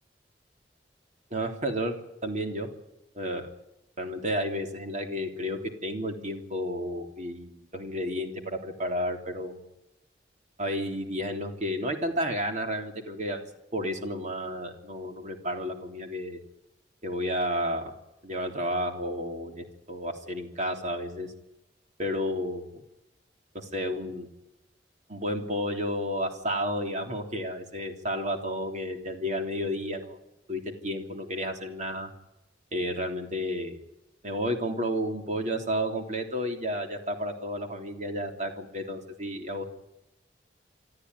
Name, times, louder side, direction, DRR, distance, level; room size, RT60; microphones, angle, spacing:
voice 1, 1.3-2.0 2.2-2.7 3.1-3.5 4.0-9.7 10.6-13.4 13.7-16.4 17.0-17.9 18.2-21.3 22.0-22.8 23.5-24.3 25.1-30.2 30.5-32.1 32.7-33.8 34.2-39.7, equal, 40° right, 4 dB, 3.3 m, -31 dB
26.0 x 13.5 x 9.7 m, 0.89 s
head